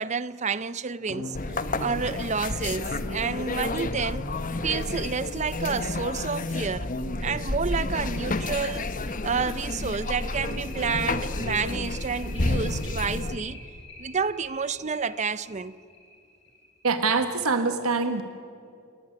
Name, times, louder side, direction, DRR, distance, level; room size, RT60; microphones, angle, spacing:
voice 1, 0.0-4.3 4.6-6.9 7.2-13.6 14.0-15.8, right 5 dB, 30° right, 0.6 m, -30 dB
sound 1, 1.1-4.2 5.7-5.8 6.2-6.3 6.7-6.8 7.2-17.3, left 3 dB, 55° left, 6.0 m, -46 dB
sound 2, 1.3-13.4, left 2 dB, 35° left, 1.0 m, -30 dB
voice 2, 16.8-18.2, right 4 dB, 80° right, 1.5 m, -24 dB
29.5 x 19.0 x 9.9 m
head